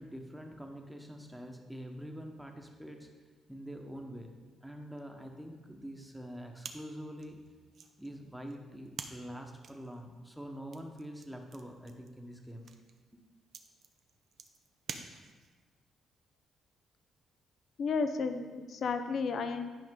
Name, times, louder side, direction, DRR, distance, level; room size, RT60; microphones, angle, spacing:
voice 1, 0.0-3.1 3.5-4.3 4.6-7.4 8.0-12.7 13.1-13.2, equal, ahead, 2 dB, 1.1 m, -45 dB
sound 1, 6.6-15.6, right 6 dB, 60° right, 0.6 m, -50 dB
voice 2, 17.8-19.7, left 4 dB, 60° left, 8 dB, 0.6 m, -32 dB
11.0 x 4.9 x 3.7 m, 1.4 s
cardioid pair, 90°, 0 cm